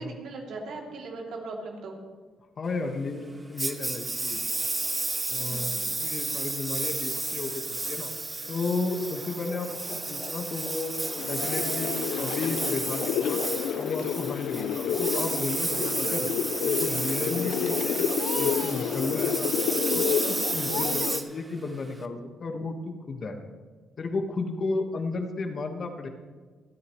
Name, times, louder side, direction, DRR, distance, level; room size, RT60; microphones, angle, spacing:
voice 1, 0.0-2.0 5.4-5.7 20.7-20.8, right 3 dB, 75° right, -1 dB, 3.0 m, -39 dB
voice 2, 2.6-4.4 5.3-8.1 8.5-13.4 13.8-16.3 16.6-18.0 18.3-19.5 19.9-22.8 23.1-23.4 24.0-26.1, left 3 dB, 45° left, 5 dB, 1.6 m, -33 dB
Engine, 3.6-22.0, right 2 dB, 20° right, 0.9 m, -32 dB
sound 1, 8.9-21.1, equal, 5° right, 1.4 m, -45 dB
sound 2, 11.2-21.2, left 9 dB, 80° left, 0.5 m, -29 dB
28.5 x 9.6 x 3.2 m, 1.4 s
cardioid pair, 90°, 0 cm